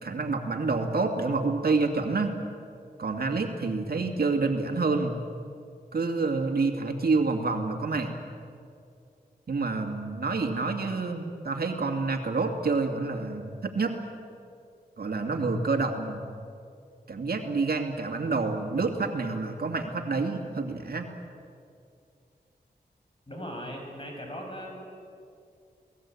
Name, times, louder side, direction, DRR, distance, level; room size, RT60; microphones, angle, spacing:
voice 1, 0.0-2.3 3.0-5.1 5.9-8.1 9.5-14.0 15.0-16.3 17.1-21.1, right 3 dB, 65° right, 4 dB, 2.3 m, -28 dB
voice 2, 23.3-24.8, equal, 30° left, 1 dB, 7.8 m, -38 dB
28.0 x 19.0 x 8.6 m, 2.5 s
cardioid pair, 60°, 17 cm